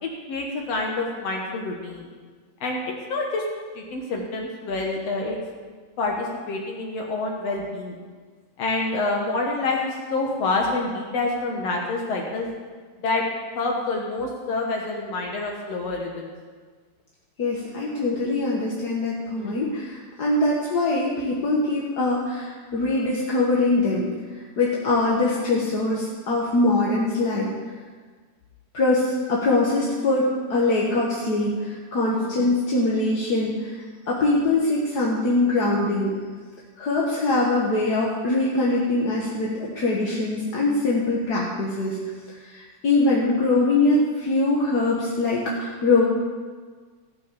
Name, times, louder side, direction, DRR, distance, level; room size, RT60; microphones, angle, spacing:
voice 1, 0.0-2.1 2.6-2.8 3.1-3.4 3.8-5.4 6.0-8.0 8.6-12.5 13.0-13.2 13.6-16.3 19.4-19.7 32.1-32.6, left 3 dB, 60° left, 0 dB, 2.2 m, -27 dB
voice 2, 17.4-27.5 28.7-33.8 34.1-36.1 36.8-42.0 42.3-46.0, left 2 dB, 45° left, -4 dB, 1.4 m, -23 dB
16.5 x 6.2 x 6.9 m, 1.5 s
omnidirectional pair, 3.4 m